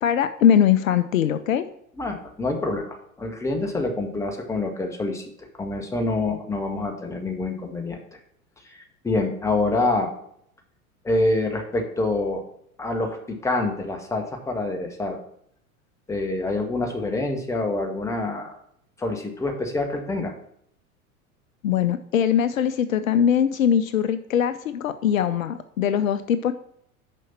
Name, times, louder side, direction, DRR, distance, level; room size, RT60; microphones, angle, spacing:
voice 1, 0.0-1.6 21.6-26.5, left 9 dB, 65° left, 12 dB, 0.6 m, -21 dB
voice 2, 2.0-8.2 8.6-10.1 11.0-12.4 12.8-15.2 16.1-18.6 19.0-20.3, left 2 dB, 5° left, 3 dB, 1.1 m, -26 dB
6.3 x 5.4 x 5.6 m, 0.71 s
figure-of-eight pair, 85°, 43 cm